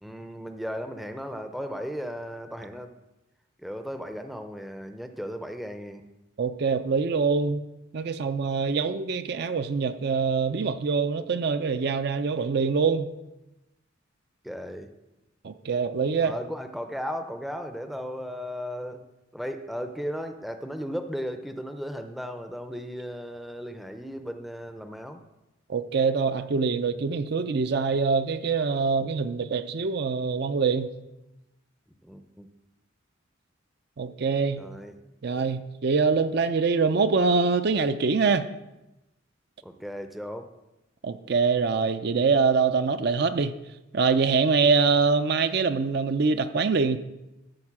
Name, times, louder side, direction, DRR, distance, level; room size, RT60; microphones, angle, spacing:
voice 1, 0.0-2.9 3.6-6.0 14.4-14.9 16.2-19.0 19.3-25.2 32.0-32.5 34.6-35.0 39.6-40.5, equal, ahead, 0.5 m, -36 dB
voice 2, 6.4-7.6 7.9-13.1 15.4-16.3 25.7-30.9 34.0-34.6 35.2-38.5 41.0-43.5 43.9-47.0, right 5 dB, 55° right, 0.5 m, -24 dB
13.0 x 4.3 x 7.3 m
head